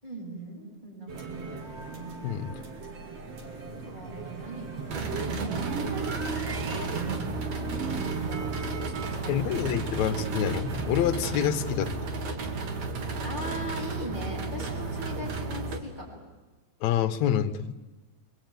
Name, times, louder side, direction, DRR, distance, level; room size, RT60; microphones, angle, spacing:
voice 1, 0.0-1.5 3.8-7.3 7.6-10.0 13.2-16.2, right 1 dB, 15° right, -1 dB, 7.1 m, -40 dB
sound 1, 1.1-11.2, right 5 dB, 60° right, 3.5 m, -37 dB
voice 2, 2.2-2.6 9.3-11.9 16.8-17.8, left 10 dB, 75° left, 8 dB, 2.3 m, -27 dB
sound 2, 4.9-15.8, right 3 dB, 75° right, 3.4 m, -33 dB
25.5 x 23.5 x 9.2 m, 1.2 s
omnidirectional pair, 3.3 m